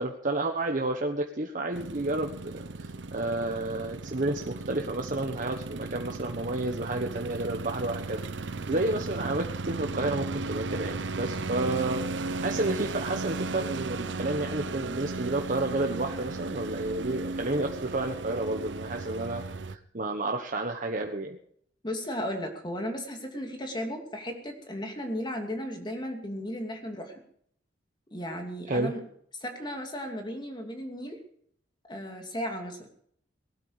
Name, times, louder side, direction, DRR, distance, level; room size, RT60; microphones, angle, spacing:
voice 1, 0.0-12.1 12.4-21.4 28.7-28.9, right 2 dB, 45° right, 2 dB, 1.3 m, -31 dB
sound 1, 1.7-19.8, right 3 dB, 80° right, 0.8 m, -36 dB
voice 2, 21.8-27.1 28.1-29.0 29.4-31.2 31.9-32.9, equal, 25° left, 4 dB, 2.7 m, -35 dB
19.0 x 12.5 x 5.1 m, 0.65 s
head